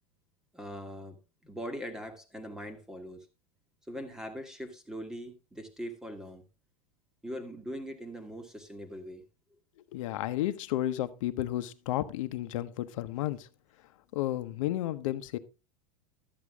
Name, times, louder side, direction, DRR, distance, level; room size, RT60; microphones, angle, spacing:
voice 1, 0.5-1.2 1.4-3.3 3.9-6.4 7.2-9.2, equal, 5° right, 1.4 m, -41 dB
voice 2, 9.9-13.5 14.1-15.4, left 14 dB, 60° left, 1.0 m, -32 dB
12.5 x 8.2 x 3.6 m
supercardioid pair, 165°, 19 cm